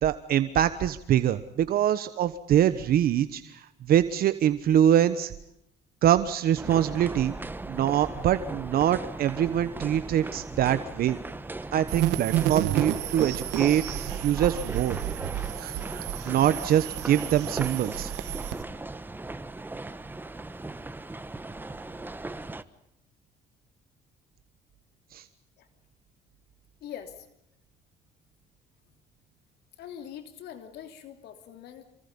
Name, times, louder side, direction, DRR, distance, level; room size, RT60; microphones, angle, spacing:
voice 1, 0.0-5.3 6.0-7.3 7.7-11.2 11.7-15.0 15.6-15.7 16.2-18.1 25.1-25.2, right 10 dB, 60° right, 12 dB, 1.2 m, -24 dB
sound 1, 6.6-22.6, right 2 dB, 10° right, 1.2 m, -38 dB
sound 2, 11.9-18.6, right 13 dB, 85° right, 1.7 m, -31 dB
voice 2, 26.8-27.3 29.8-31.8, left 9 dB, 75° left, 8 dB, 3.2 m, -43 dB
27.5 x 24.5 x 5.4 m, 0.79 s
cardioid pair, 110°, 17 cm